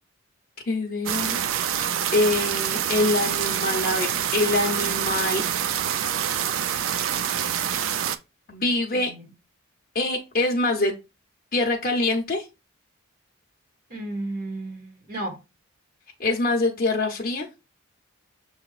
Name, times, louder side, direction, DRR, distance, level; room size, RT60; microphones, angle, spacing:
voice 1, 0.7-1.4 1.8-5.4 8.5-9.1 9.9-10.9 11.5-12.4 16.2-17.5, left 2 dB, 40° left, 0.8 m, -24 dB
sound 1, 1.1-8.2, right 9 dB, 60° right, 0.3 m, -26 dB
voice 2, 13.9-15.4, right 1 dB, 45° right, 1.4 m, -33 dB
6.5 x 2.9 x 2.4 m
head